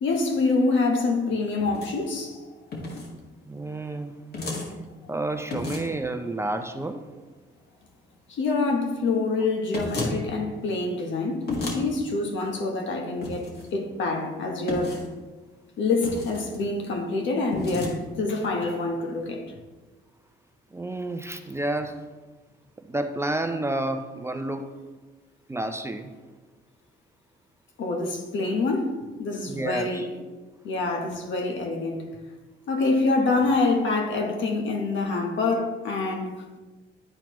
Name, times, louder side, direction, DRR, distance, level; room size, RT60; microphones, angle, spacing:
voice 1, 0.0-2.5 5.0-5.1 8.3-15.1 15.8-19.5 27.8-30.1 30.6-32.2 32.7-36.6, left 3 dB, 70° left, 1.1 m, -26 dB
sound 1, 1.6-1.9 2.7-3.1 4.3-4.7 5.5-6.0 9.7-10.2 11.5-11.8 13.2-13.7 14.7-15.1 16.0-16.6 17.5-18.0, left 2 dB, 55° left, 1.6 m, -31 dB
voice 2, 3.5-4.1 5.1-7.0 20.7-22.0 22.9-24.7 25.5-26.1 29.5-29.9, right 2 dB, 15° right, 0.5 m, -30 dB
10.0 x 4.2 x 3.0 m
cardioid pair, 90°, 20 cm